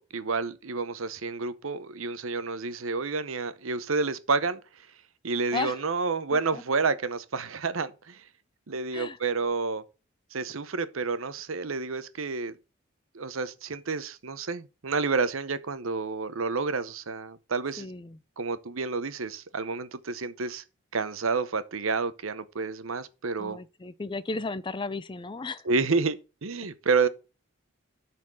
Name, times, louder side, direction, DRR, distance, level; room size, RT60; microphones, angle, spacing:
voice 1, 0.0-4.6 5.2-8.2 8.7-9.8 10.3-12.6 13.1-17.9 18.4-20.6 20.9-23.6 25.6-27.1, right 4 dB, 75° right, 0.8 m, -29 dB
voice 2, 6.3-6.6 8.9-9.2 17.8-18.2 23.4-25.7, left 3 dB, 20° left, 0.4 m, -34 dB
12.0 x 4.3 x 4.8 m
head